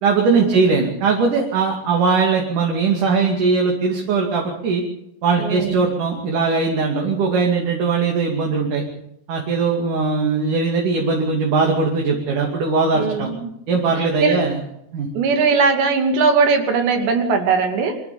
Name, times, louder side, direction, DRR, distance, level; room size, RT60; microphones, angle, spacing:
voice 1, 0.0-4.8 5.2-8.8 9.3-13.3 13.7-14.6 14.9-15.1, right 4 dB, 55° right, 0 dB, 3.8 m, -20 dB
voice 2, 5.4-5.9 12.9-13.5 14.2-14.4 15.1-18.0, right 4 dB, 85° right, 5 dB, 4.8 m, -19 dB
25.0 x 15.0 x 7.1 m, 0.78 s
omnidirectional pair, 4.8 m